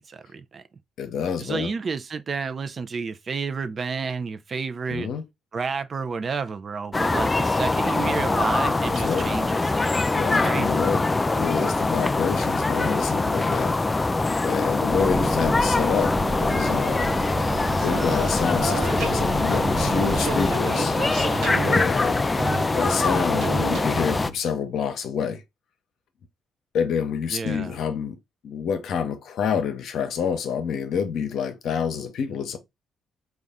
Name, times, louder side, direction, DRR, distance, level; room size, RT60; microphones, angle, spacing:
voice 1, 0.1-0.6 1.4-5.1 5.5-10.7 27.3-27.7, right 5 dB, 45° right, 0.5 m, -30 dB
voice 2, 1.0-1.7 4.9-5.3 8.9-9.3 10.0-11.1 11.3-17.2 17.8-21.0 21.6-25.4 26.7-28.2 28.4-32.6, left 7 dB, 70° left, 0.8 m, -28 dB
sound 1, 6.9-24.3, left 3 dB, 25° left, 0.3 m, -23 dB
sound 2, 14.9-20.6, right 1 dB, 15° right, 0.8 m, -30 dB
sound 3, 17.8-24.4, right 4 dB, 80° right, 1.1 m, -32 dB
4.1 x 2.4 x 3.5 m
supercardioid pair, 65°, 0 cm